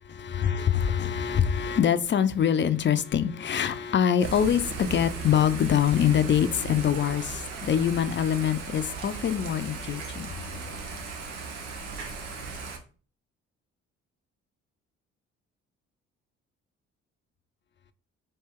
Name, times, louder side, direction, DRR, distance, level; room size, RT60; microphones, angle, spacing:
voice 1, 0.1-10.3, left 9 dB, 35° left, 0.4 m, -24 dB
Thunder / Rain, 4.2-12.8, right 4 dB, 90° right, 0.7 m, -37 dB
4.3 x 2.8 x 3.5 m
hypercardioid pair, 45°, 34 cm